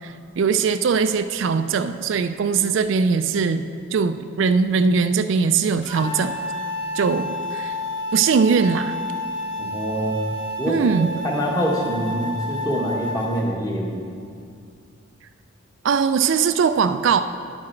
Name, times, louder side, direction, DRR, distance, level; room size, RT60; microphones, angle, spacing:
voice 1, 0.0-6.4 6.9-7.8 8.1-9.0 10.7-11.1 15.8-17.2, right 5 dB, 65° right, 10 dB, 0.3 m, -21 dB
sound 1, 5.8-13.4, left 1 dB, 60° left, 1.7 m, -30 dB
voice 2, 9.6-14.0, equal, 15° left, -2 dB, 1.4 m, -25 dB
10.5 x 8.6 x 4.4 m, 2.3 s
head